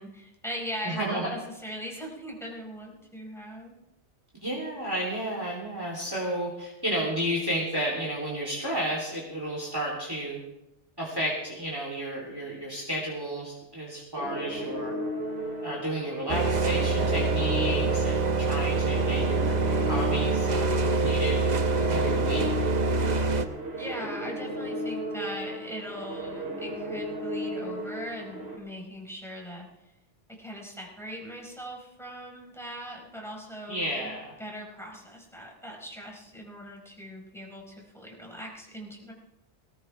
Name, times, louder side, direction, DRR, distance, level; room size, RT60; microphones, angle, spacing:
voice 1, 0.0-3.7 23.8-29.7 30.4-34.1 34.4-39.1, equal, ahead, -2 dB, 4.4 m, -40 dB
voice 2, 0.8-1.3 4.4-10.4 11.0-14.9 15.6-21.4 21.9-22.5 33.7-34.3, right 1 dB, 20° right, -4 dB, 3.0 m, -32 dB
sound 1, 14.1-28.6, equal, 60° right, 3.1 m, -35 dB
sound 2, 16.3-23.5, right 3 dB, 40° right, 1.0 m, -25 dB
18.5 x 18.0 x 3.4 m, 0.91 s
omnidirectional pair, 1.2 m